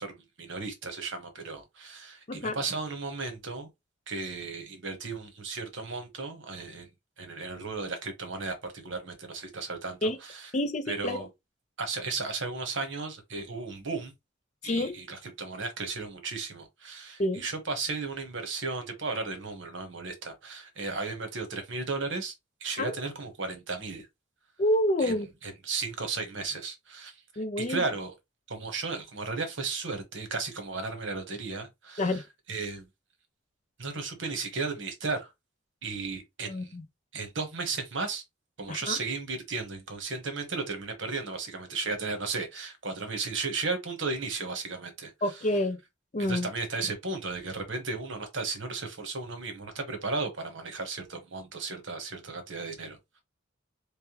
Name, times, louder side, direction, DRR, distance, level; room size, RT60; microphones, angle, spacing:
voice 1, 0.0-3.7 4.1-6.9 7.2-10.4 10.9-11.3 11.8-14.1 14.6-22.3 22.6-24.1 25.0-25.1 25.4-27.1 27.6-28.1 28.5-32.2 32.5-32.8 33.8-35.3 35.8-36.7 37.1-38.2 38.6-45.1 46.2-53.2, right 4 dB, 65° right, 1.1 m, -35 dB
voice 2, 10.5-11.3 14.6-15.0 17.2-17.4 22.8-23.0 24.6-25.3 27.4-27.8 32.0-32.2 36.4-36.8 38.7-39.0 45.2-45.8 46.1-46.5, left 1 dB, 35° left, 0.5 m, -28 dB
3.4 x 3.1 x 3.0 m
head